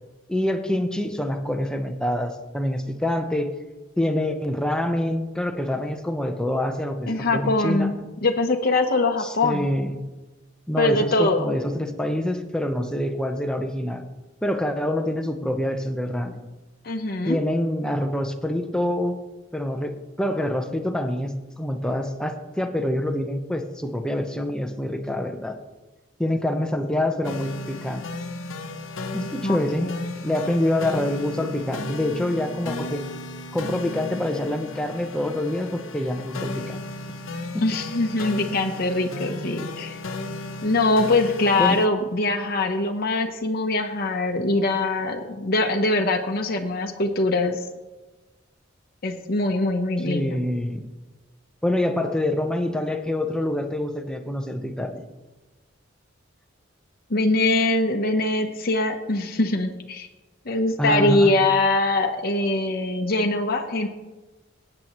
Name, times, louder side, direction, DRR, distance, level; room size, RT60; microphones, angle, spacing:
voice 1, 0.3-3.5 4.0-7.9 9.2-10.0 10.7-14.1 14.4-16.4 17.3-19.2 19.5-25.6 26.2-28.1 29.1-29.9 30.2-33.0 33.5-36.8 37.5-37.6 41.6-41.8 50.1-50.8 51.6-55.0 60.8-61.3, left 1 dB, 5° left, 5 dB, 0.8 m, -26 dB
voice 2, 7.1-9.7 10.8-11.5 16.8-17.4 29.4-30.0 37.6-40.0 40.6-47.6 49.0-50.4 57.1-60.1 60.5-63.9, left 2 dB, 50° left, 3 dB, 0.9 m, -23 dB
sound 1, 27.2-41.9, left 2 dB, 90° left, 0.9 m, -35 dB
17.0 x 8.8 x 3.1 m, 1.1 s
head